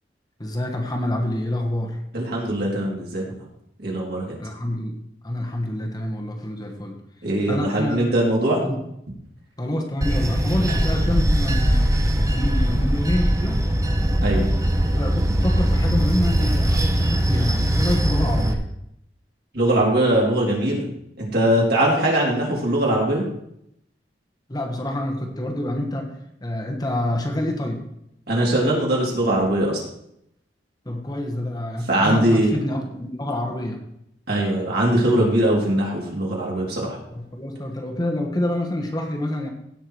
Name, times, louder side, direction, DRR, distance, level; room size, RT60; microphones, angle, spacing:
voice 1, 0.4-2.0 4.4-5.0 5.2-7.0 7.5-8.1 8.6-8.8 9.6-11.9 12.3-13.6 14.3-14.5 14.9-18.6 24.5-26.1 26.4-27.8 30.8-33.8 37.1-39.5, left 1 dB, 25° left, 1 dB, 1.5 m, -27 dB
voice 2, 2.1-3.2 3.8-4.4 7.2-8.6 14.2-14.4 19.5-20.8 21.2-23.2 28.3-29.8 31.9-32.5 34.3-37.0, right 1 dB, 65° right, -3 dB, 3.8 m, -21 dB
Bell / Train, 10.0-18.5, equal, 20° right, 1.0 m, -21 dB
16.5 x 6.0 x 4.7 m, 0.77 s
head